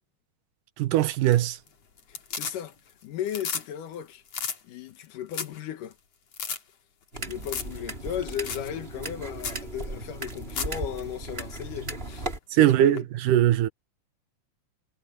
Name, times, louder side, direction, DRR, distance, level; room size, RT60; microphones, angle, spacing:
voice 1, 0.8-1.6 12.5-13.7, right 12 dB, 80° right, 2.5 m, -21 dB
sound 1, 1.1-1.7 2.0-2.9 3.2-3.7 3.9-4.0 4.3-4.6 5.0-5.1 5.3-5.6 5.9-6.0 6.3-6.6 7.4-7.8 8.0-8.1 8.4-8.7 9.0-9.1 9.4-9.6 10.3-10.8 13.0-13.1, left 6 dB, 50° left, 3.6 m, -33 dB
voice 2, 2.1-2.8 3.0-4.2 4.6-6.0 7.2-13.0, left 10 dB, 80° left, 2.9 m, -36 dB
sound 2, 7.1-12.4, right 2 dB, 20° right, 2.9 m, -36 dB
omnidirectional pair, 3.7 m